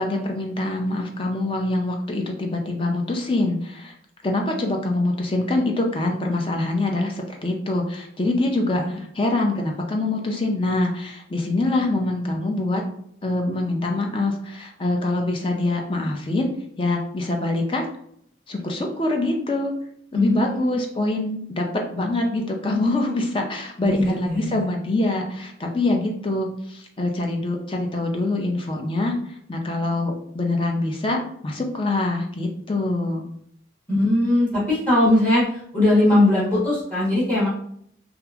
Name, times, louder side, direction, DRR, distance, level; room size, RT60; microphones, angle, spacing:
voice 1, 0.0-3.9 4.2-12.8 13.2-16.5 16.8-17.9 18.5-19.7 20.1-21.7 21.9-29.2 29.5-33.2, left 2 dB, 30° left, 2 dB, 0.4 m, -24 dB
voice 2, 20.1-20.8 23.8-24.6 33.9-37.5, left 1 dB, 10° left, -8 dB, 1.0 m, -20 dB
2.8 x 2.4 x 2.4 m, 0.67 s
head